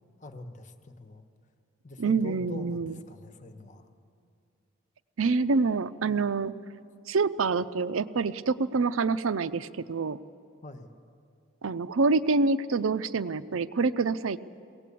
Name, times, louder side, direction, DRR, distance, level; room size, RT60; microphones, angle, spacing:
voice 1, 0.2-1.2 1.8-3.9 10.6-10.9, left 2 dB, 35° left, 7 dB, 1.1 m, -44 dB
voice 2, 2.0-3.0 5.2-6.6 7.1-10.2 11.6-14.4, right 4 dB, 85° right, 13 dB, 0.6 m, -26 dB
21.5 x 18.0 x 8.4 m, 2.5 s
head